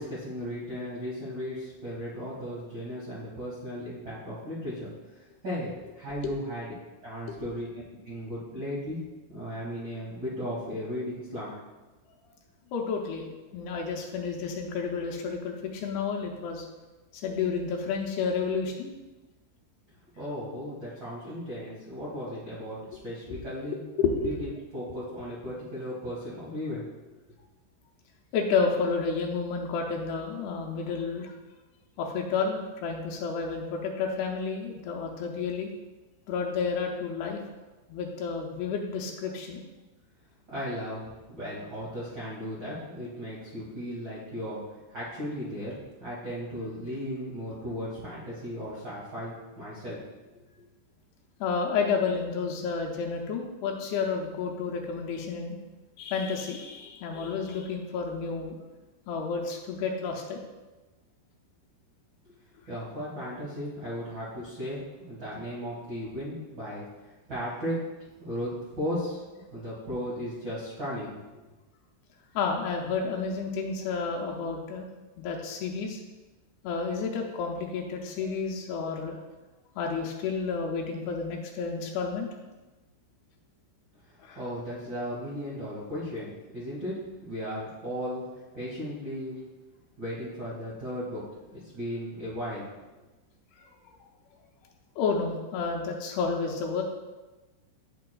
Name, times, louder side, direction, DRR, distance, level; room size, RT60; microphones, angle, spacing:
voice 1, 0.0-4.9 5.4-5.7 5.9-6.7 7.0-7.7 8.0-9.0 9.3-11.5 20.1-22.8 23.0-23.8 24.2-26.8 40.5-44.6 44.9-50.0 62.7-66.8 67.3-67.8 68.2-69.2 69.5-71.1 84.3-88.2 88.5-89.4 90.0-91.2 91.7-92.6, equal, 65° right, -9 dB, 1.1 m, -36 dB
voice 2, 12.7-13.3 13.5-16.7 17.2-18.9 23.3-23.4 24.0-24.4 28.3-31.3 32.0-35.7 36.3-37.4 37.9-39.6 51.4-55.6 56.0-58.6 59.1-60.4 72.4-74.9 75.2-76.0 76.6-79.2 79.8-82.3 84.2-84.4 95.0-96.8, left 5 dB, 80° left, 0 dB, 2.5 m, -30 dB
9.4 x 6.6 x 2.3 m, 1.2 s
omnidirectional pair, 4.9 m